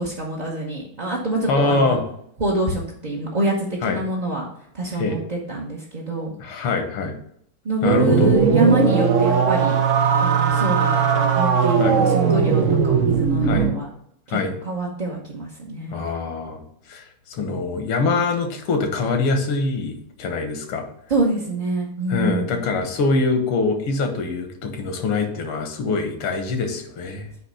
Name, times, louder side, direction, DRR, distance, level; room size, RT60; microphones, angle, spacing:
voice 1, 0.0-2.0 2.4-4.5 4.7-6.3 7.6-9.8 10.2-13.9 14.3-14.4 14.6-16.0 21.1-22.5, right 2 dB, 40° right, -2 dB, 0.6 m, -25 dB
voice 2, 1.5-2.0 3.8-4.0 5.0-5.2 6.4-7.1 7.8-8.3 11.8-12.0 13.4-13.7 14.3-14.5 15.9-16.6 16.9-19.9 20.2-20.9 22.1-27.3, left 3 dB, 85° left, 5 dB, 2.1 m, -23 dB
sound 1, 7.8-13.8, right 6 dB, 85° right, 0.6 m, -18 dB
8.5 x 3.0 x 6.2 m, 0.70 s
omnidirectional pair, 2.4 m